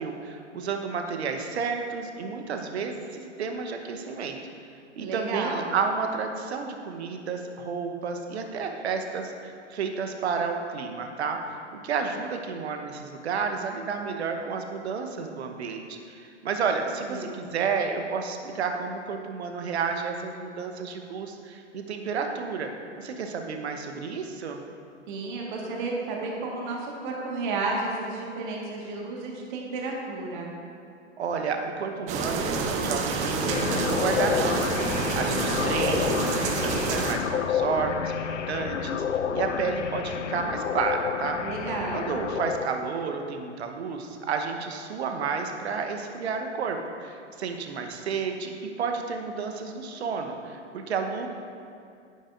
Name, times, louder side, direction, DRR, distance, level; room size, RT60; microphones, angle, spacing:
voice 1, 0.0-4.4 5.0-11.4 11.7-22.7 23.0-24.6 31.2-34.7 35.1-36.2 36.4-39.0 39.3-41.4 41.9-51.3, right 5 dB, 60° right, 4 dB, 1.1 m, -31 dB
voice 2, 5.0-5.6 17.1-17.3 25.1-30.5 41.4-42.1, right 3 dB, 40° right, -1 dB, 1.7 m, -32 dB
sound 1, 32.1-37.2, right 4 dB, 20° right, 0.6 m, -28 dB
sound 2, 33.5-42.7, left 8 dB, 75° left, 0.5 m, -29 dB
11.0 x 9.8 x 2.6 m, 2.5 s
figure-of-eight pair, 110°, 38 cm